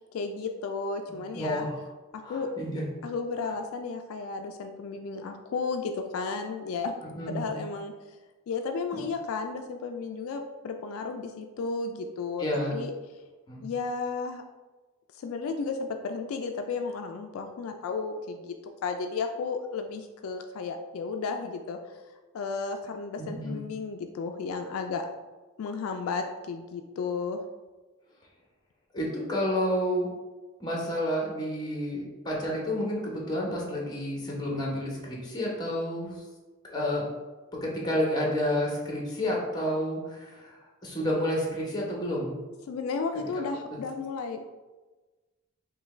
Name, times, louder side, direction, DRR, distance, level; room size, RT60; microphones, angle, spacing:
voice 1, 0.1-1.7 2.1-2.5 3.0-7.0 7.3-7.9 8.5-12.4 12.7-12.9 13.6-14.4 15.1-18.5 18.8-22.0 22.3-25.1 25.6-27.4 42.7-44.4, left 4 dB, 75° left, 5 dB, 0.3 m, -33 dB
voice 2, 1.1-1.8 2.2-2.8 7.1-7.4 8.9-9.0 12.4-12.7 13.5-13.6 23.2-23.6 28.9-30.1 30.6-36.1 36.6-37.1 37.6-42.4, equal, 20° left, -3 dB, 0.9 m, -30 dB
5.4 x 2.3 x 3.2 m, 1.2 s
head